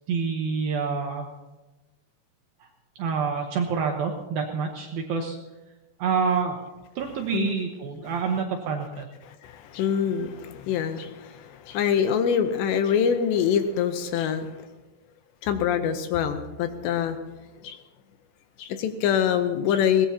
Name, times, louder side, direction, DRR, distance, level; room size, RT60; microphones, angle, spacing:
voice 1, 0.1-1.3 2.6-2.7 3.0-5.4 6.0-6.6 7.0-9.1, right 6 dB, 80° right, 2 dB, 2.2 m, -27 dB
voice 2, 9.2-14.6 15.4-17.2 17.6-17.8 18.6-20.1, left 8 dB, 80° left, 8 dB, 2.8 m, -25 dB
22.0 x 18.5 x 2.8 m, 1.1 s
omnidirectional pair, 5.3 m